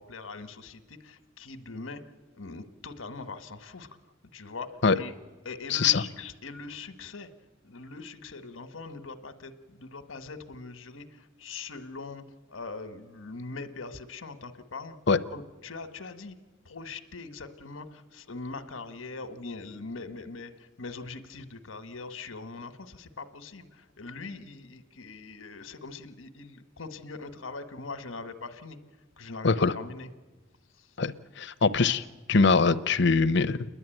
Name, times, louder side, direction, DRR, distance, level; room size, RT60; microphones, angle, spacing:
voice 1, 0.0-2.0 2.3-3.9 4.3-4.7 4.9-5.1 5.4-7.3 7.6-12.2 12.5-15.0 15.3-16.3 16.6-28.8 29.2-30.1 30.8-30.9, left 3 dB, 85° left, 9 dB, 1.3 m, -42 dB
voice 2, 5.7-6.0 15.1-15.2 29.4-29.7 31.0-33.7, left 4 dB, 60° left, 11 dB, 0.7 m, -23 dB
29.0 x 11.0 x 9.1 m, 1.3 s
head